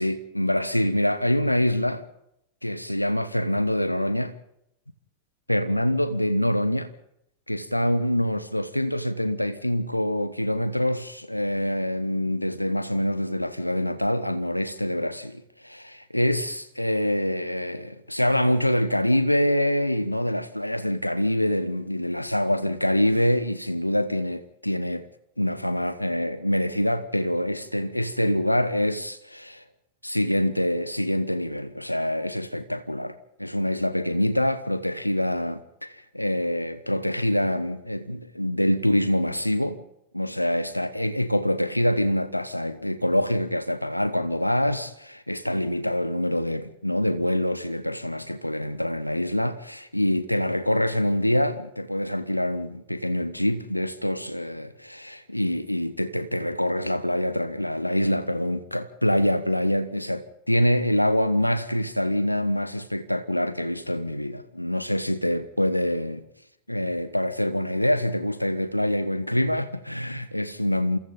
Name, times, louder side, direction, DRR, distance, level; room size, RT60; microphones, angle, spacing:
voice 1, 0.0-2.0 2.6-4.3 5.5-6.9 7.5-25.0 25.4-29.6 30.0-39.8 40.1-66.2 66.7-71.0, left 1 dB, 90° left, 1.3 m, -25 dB
29.5 x 28.0 x 3.8 m
figure-of-eight pair, 90°, 0 cm